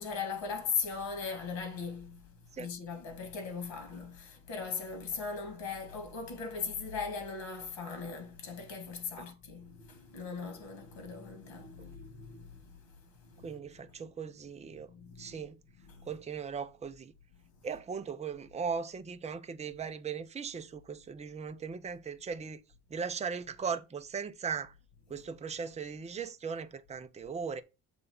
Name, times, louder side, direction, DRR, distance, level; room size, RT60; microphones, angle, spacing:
voice 1, 0.0-13.5 14.9-15.5 15.8-16.1, left 5 dB, 85° left, 2.0 m, -39 dB
voice 2, 13.4-14.9 15.2-15.6 16.1-17.1 17.6-22.6 22.9-24.7 25.1-27.6, right 6 dB, 15° right, 0.4 m, -38 dB
6.9 x 3.6 x 5.3 m
cardioid pair, 140°, 44 cm